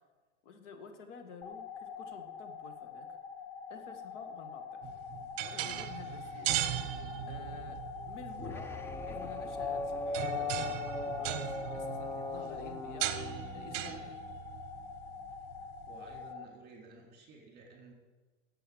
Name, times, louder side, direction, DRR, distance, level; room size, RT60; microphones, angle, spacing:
voice 1, 0.4-3.2 3.7-4.8 5.4-6.6 6.9-7.0 7.3-7.8 8.1-8.7 9.0-13.1 13.5-14.2, left 5 dB, 70° left, 7 dB, 1.9 m, -51 dB
sound 1, 1.4-16.4, left 6 dB, 30° left, 0.9 m, -45 dB
sound 2, 4.8-16.2, right 13 dB, 45° right, 1.0 m, -39 dB
sound 3, 8.4-13.9, left 3 dB, 5° left, 0.3 m, -39 dB
voice 2, 15.8-17.9, right 3 dB, 25° right, 1 dB, 4.0 m, -53 dB
10.5 x 8.2 x 8.6 m, 1.3 s
supercardioid pair, 140°, 38 cm